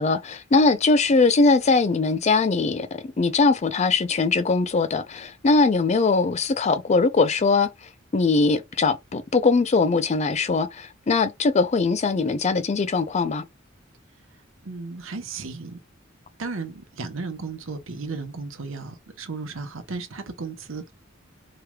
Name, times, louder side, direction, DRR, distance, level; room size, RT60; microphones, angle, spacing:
voice 1, 0.0-7.7 8.1-13.4, left 3 dB, 35° left, 0.4 m, -21 dB
voice 2, 14.6-15.8 16.4-20.9, right 4 dB, 85° right, 1.0 m, -34 dB
4.7 x 3.1 x 2.3 m
head